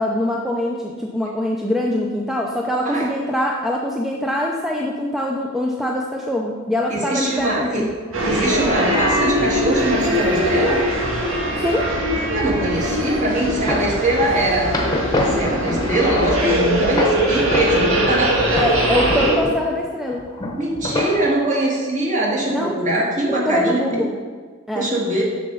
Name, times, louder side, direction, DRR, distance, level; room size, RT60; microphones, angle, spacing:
voice 1, 0.0-7.9 11.6-11.9 18.5-20.2 22.5-22.7 23.3-24.2 24.7-24.9, left 1 dB, ahead, -1 dB, 0.5 m, -23 dB
voice 2, 6.9-7.9 8.2-10.8 12.3-14.7 15.2-18.6 20.6-24.1 24.7-25.2, right 1 dB, 35° right, -3 dB, 1.9 m, -22 dB
sound 1, 7.4-8.2 9.0-9.4 10.3-11.1 11.3-18.3 18.6-19.8 20.1-21.2, left 1 dB, 20° left, 1.0 m, -28 dB
sound 2, 8.1-19.4, equal, 65° right, 1.8 m, -21 dB
7.1 x 6.7 x 5.4 m, 1.6 s
head